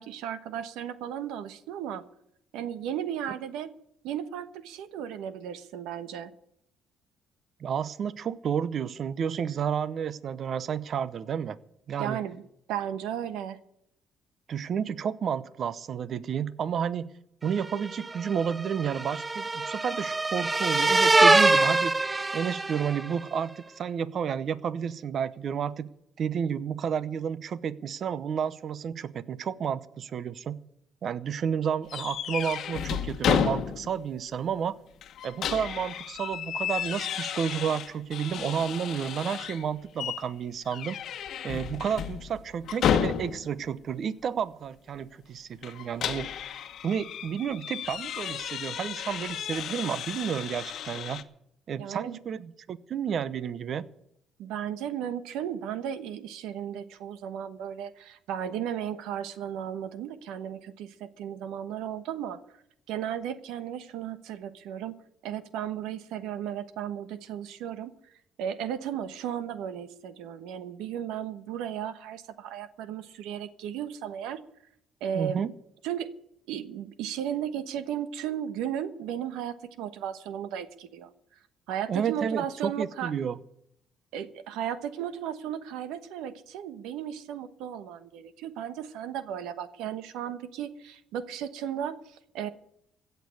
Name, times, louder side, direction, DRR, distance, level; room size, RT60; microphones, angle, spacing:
voice 1, 0.0-2.0 2.5-3.8 4.0-6.3 12.0-12.4 12.7-13.6 51.7-52.2 54.4-62.4 62.9-64.9 65.2-67.9 68.4-74.4 75.0-75.4 75.8-76.1 76.5-81.1 81.7-83.1 84.1-92.5, right 9 dB, 90° right, 12 dB, 1.1 m, -35 dB
voice 2, 7.6-11.6 11.9-12.2 14.5-17.1 17.4-22.0 22.3-25.9 26.2-30.6 31.0-34.7 35.2-41.0 41.4-46.3 46.8-51.2 51.7-53.9 75.1-75.5 81.9-83.4, right 7 dB, 50° right, 17 dB, 0.8 m, -31 dB
sound 1, 17.7-23.1, right 2 dB, 20° right, 0.5 m, -24 dB
sound 2, 31.9-34.1 34.4-34.5 35.0-39.6 40.0-40.3 40.7-43.6 45.6-51.2, left 9 dB, 65° left, 1.1 m, -32 dB
16.0 x 6.8 x 9.5 m, 0.74 s
cardioid pair, 105°, 0 cm